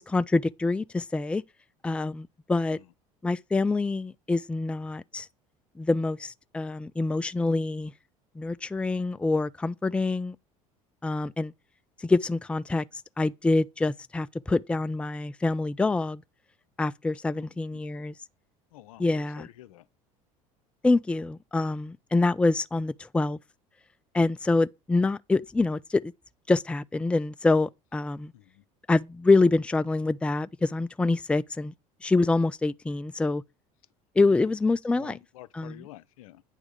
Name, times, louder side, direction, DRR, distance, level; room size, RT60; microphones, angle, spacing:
voice 1, 0.0-1.4 1.8-2.8 3.2-5.3 5.8-7.9 8.4-10.4 11.0-11.5 12.0-12.8 13.2-16.2 16.8-18.1 19.0-19.5 20.8-23.4 24.1-26.1 26.5-28.3 28.9-31.7 32.0-33.4 34.2-35.1 35.6-35.8, left 3 dB, 5° left, 0.4 m, -26 dB
voice 2, 17.3-17.8 18.7-19.9 28.3-28.6 34.3-34.5 34.9-36.4, left 14 dB, 75° left, 0.6 m, -49 dB
9.1 x 3.6 x 6.6 m
hypercardioid pair, 70°, 18 cm